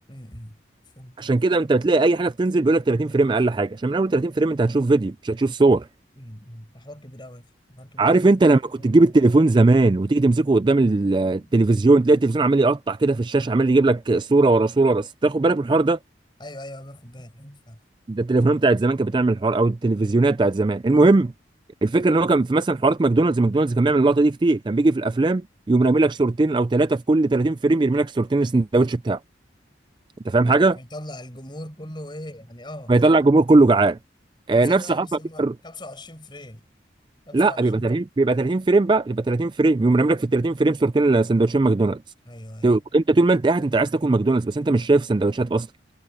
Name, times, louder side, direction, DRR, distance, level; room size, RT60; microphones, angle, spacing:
voice 1, 0.1-0.6 0.9-1.2 6.2-8.2 8.7-9.1 11.4-11.6 16.4-17.8 30.5-32.9 34.5-36.6 37.3-38.0 42.2-42.8, left 1 dB, 25° left, 5.0 m, -40 dB
voice 2, 1.2-5.9 8.0-16.0 18.1-21.3 21.8-29.2 30.3-30.8 32.9-34.0 34.5-35.1 35.4-35.5 37.3-42.0 42.6-45.7, right 2 dB, 25° right, 0.3 m, -19 dB
head